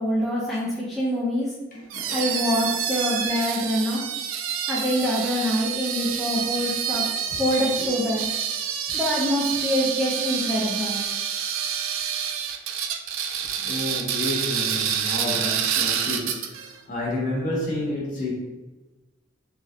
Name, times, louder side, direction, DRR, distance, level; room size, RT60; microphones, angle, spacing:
voice 1, 0.0-1.5 2.1-4.0 4.7-7.0 7.4-8.2 8.9-11.0, equal, ahead, -7 dB, 0.4 m, -25 dB
voice 2, 1.7-3.1 13.6-18.3, left 1 dB, 45° left, -4 dB, 0.8 m, -31 dB
sound 1, 1.9-16.7, right 8 dB, 80° right, 0.3 m, -28 dB
2.9 x 2.6 x 2.4 m, 1.1 s
head